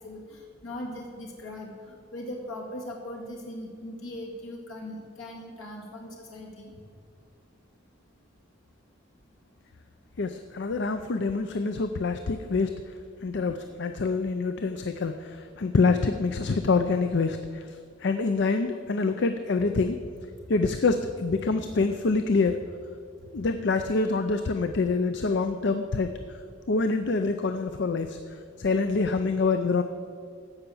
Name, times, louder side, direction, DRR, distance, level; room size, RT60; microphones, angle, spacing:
voice 1, 0.0-6.7, left 1 dB, 85° left, -2 dB, 2.0 m, -39 dB
voice 2, 10.2-12.7 13.2-17.4 18.0-20.0 20.5-22.6 23.3-26.1 26.7-28.2 28.6-29.8, left 4 dB, 60° left, 8 dB, 0.5 m, -26 dB
15.0 x 5.8 x 6.9 m, 2.2 s
head